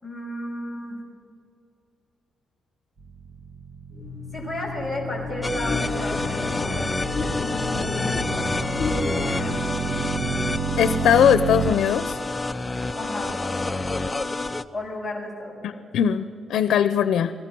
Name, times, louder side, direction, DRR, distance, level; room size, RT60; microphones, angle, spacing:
voice 1, 0.0-1.0 4.3-8.5 13.0-13.3 14.7-15.9, left 1 dB, 5° right, -1 dB, 6.4 m, -33 dB
sound 1, 3.0-11.7, right 5 dB, 45° right, 1.7 m, -32 dB
sound 2, 3.9-9.6, left 4 dB, 45° left, 7.4 m, -30 dB
sound 3, 5.4-14.6, left 2 dB, 15° left, 0.6 m, -29 dB
voice 2, 10.8-12.2 15.6-17.3, left 9 dB, 85° left, 12 dB, 0.7 m, -20 dB
30.0 x 20.0 x 6.1 m, 2.5 s
wide cardioid pair, 160°, 0 cm